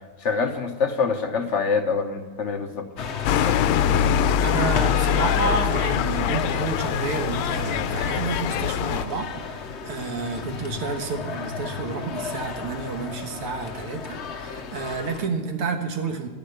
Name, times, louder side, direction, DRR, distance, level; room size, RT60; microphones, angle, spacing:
voice 1, 0.2-2.9 3.4-3.6, left 5 dB, 50° left, 5 dB, 0.9 m, -25 dB
sound 1, 3.0-15.3, left 5 dB, 65° left, 0.6 m, -33 dB
sound 2, 3.2-9.0, left 9 dB, 85° left, 1.5 m, -23 dB
voice 2, 4.4-16.3, right 4 dB, 85° right, 5 dB, 2.3 m, -30 dB
11.5 x 10.5 x 8.2 m, 1.4 s
omnidirectional pair, 2.4 m